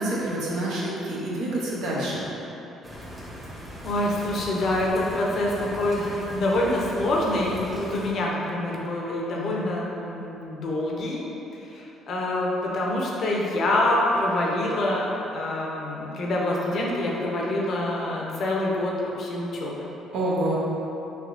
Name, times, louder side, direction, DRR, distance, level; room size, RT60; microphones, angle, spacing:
voice 1, 0.0-2.3 9.3-9.5 20.1-20.5, right 1 dB, 80° right, -5 dB, 0.7 m, -27 dB
sound 1, 2.8-8.1, equal, 5° right, 0.7 m, -39 dB
voice 2, 3.8-11.2 11.7-19.9, left 1 dB, 55° left, -3 dB, 0.6 m, -26 dB
3.4 x 2.7 x 2.5 m, 3.0 s
cardioid pair, 90°, 0 cm